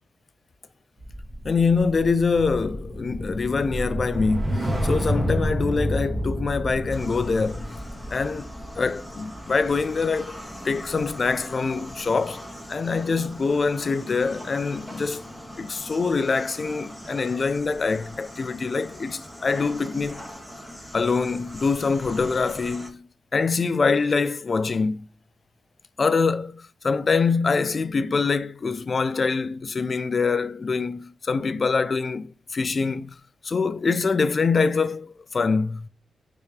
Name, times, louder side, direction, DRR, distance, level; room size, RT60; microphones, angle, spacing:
sound 1, 1.0-11.4 11.7-12.0, equal, 30° right, 1.0 m, -30 dB
voice 1, 1.4-7.7 8.1-8.5 8.8-10.4 10.6-15.3 15.6-20.2 20.9-25.1 26.0-33.2 33.4-35.9, left 4 dB, 45° left, 0.3 m, -24 dB
sound 2, 6.9-22.9, equal, 5° left, 1.0 m, -41 dB
3.4 x 2.8 x 3.2 m
cardioid pair, 70°, 0 cm